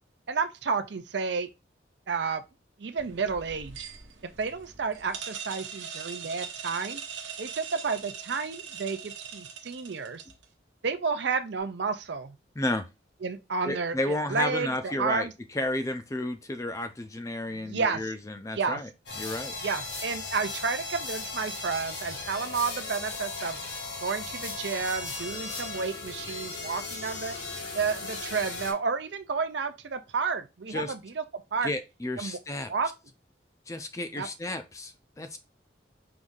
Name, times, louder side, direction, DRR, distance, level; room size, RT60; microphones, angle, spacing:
voice 1, 0.3-1.5 2.1-2.4 2.8-3.8 4.4-7.0 7.4-10.2 10.8-12.4 13.2-15.3 17.5-18.1 18.5-18.8 19.6-23.6 24.0-27.4 27.7-31.2 31.5-31.7 32.2-32.4 32.7-32.9 34.2-34.3, right 5 dB, 65° right, 0.5 m, -31 dB
sound 1, 3.0-10.4, right 7 dB, 85° right, 1.0 m, -41 dB
voice 2, 12.6-12.9 13.6-18.9 19.2-19.5 30.7-30.9 31.6-32.7 33.7-35.4, left 1 dB, 15° left, 0.4 m, -32 dB
sound 2, 19.1-28.7, left 3 dB, 70° left, 1.7 m, -37 dB
4.7 x 2.7 x 3.7 m
head